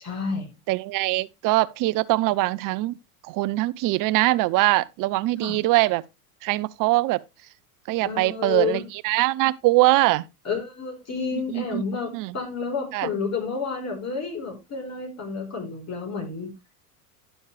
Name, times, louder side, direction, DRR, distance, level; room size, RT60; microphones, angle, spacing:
voice 1, 0.0-0.5 5.4-5.6 8.0-8.8 10.4-16.5, left 5 dB, 35° left, 4.6 m, -30 dB
voice 2, 0.7-3.0 3.2-6.0 6.4-7.2 7.9-10.3 11.3-11.8 12.1-12.4 12.9-13.1, right 19 dB, 45° right, 0.7 m, -22 dB
11.0 x 7.2 x 3.4 m
hypercardioid pair, 100°, 45 cm